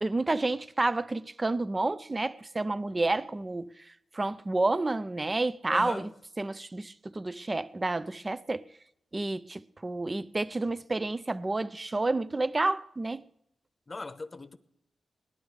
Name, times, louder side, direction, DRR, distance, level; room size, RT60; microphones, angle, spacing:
voice 1, 0.0-3.7 4.1-6.1 6.4-8.6 9.1-13.3, right 2 dB, 25° right, 0.5 m, -30 dB
voice 2, 5.7-6.1 13.9-14.6, left 3 dB, 30° left, 0.9 m, -39 dB
19.0 x 11.5 x 4.8 m
cardioid pair, 80°, 0 cm